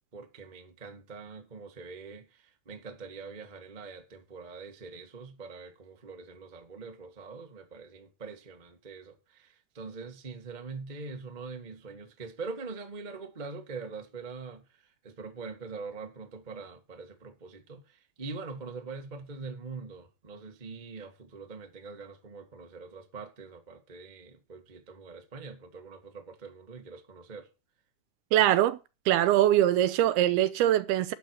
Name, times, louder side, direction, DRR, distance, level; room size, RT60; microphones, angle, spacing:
voice 1, 0.1-27.5, right 4 dB, 35° right, 0.7 m, -43 dB
voice 2, 28.3-28.8 29.1-31.1, right 12 dB, 85° right, 2.8 m, -23 dB
12.5 x 8.4 x 4.7 m
omnidirectional pair, 4.5 m